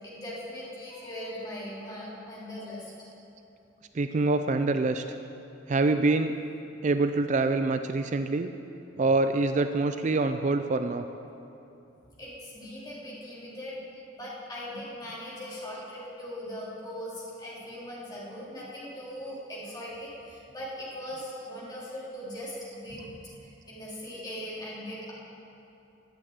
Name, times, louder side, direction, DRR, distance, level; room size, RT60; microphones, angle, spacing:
voice 1, 0.0-2.9 12.2-13.8 14.1-23.1 23.4-25.1, equal, 20° left, -7 dB, 3.5 m, -40 dB
voice 2, 3.9-5.0 5.7-6.4 6.8-8.5 9.0-11.0, right 3 dB, 40° right, 9 dB, 0.4 m, -25 dB
11.5 x 8.6 x 8.8 m, 2.9 s
head